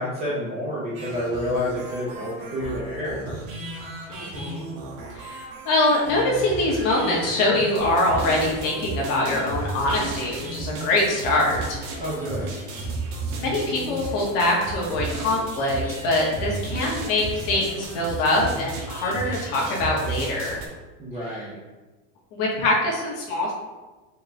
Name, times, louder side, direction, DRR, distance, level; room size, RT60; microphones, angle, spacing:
voice 1, 0.0-3.4 12.0-12.6 21.0-21.6, left 1 dB, 15° right, -7 dB, 0.4 m, -29 dB
sound 1, 0.9-20.7, right 3 dB, 90° right, 1.0 m, -34 dB
voice 2, 4.1-4.7 5.1-12.0 13.4-20.6 22.3-23.5, left 2 dB, 50° left, -3 dB, 1.2 m, -24 dB
4.3 x 2.2 x 3.9 m, 1.2 s
supercardioid pair, 165°, 39 cm